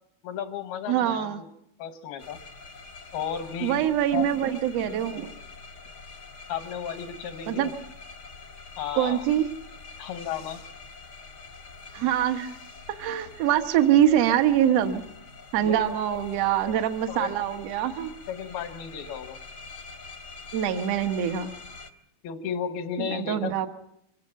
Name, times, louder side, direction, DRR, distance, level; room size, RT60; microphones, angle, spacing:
voice 1, 0.2-1.5 1.8-2.4 3.1-3.9 4.1-4.3 6.5-7.7 8.8-9.2 10.0-10.6 15.6-15.9 16.7-17.3 18.3-19.4 22.2-23.5, left 8 dB, 85° left, 8 dB, 3.2 m, -34 dB
voice 2, 0.9-1.4 3.6-5.3 7.5-7.7 9.0-9.5 11.9-12.5 12.9-15.0 15.5-18.1 20.5-21.5 23.0-23.7, right 10 dB, 60° right, 7 dB, 1.7 m, -24 dB
sound 1, 2.2-21.9, left 4 dB, 60° left, 1.0 m, -45 dB
24.5 x 17.0 x 7.5 m, 0.76 s
omnidirectional pair, 4.3 m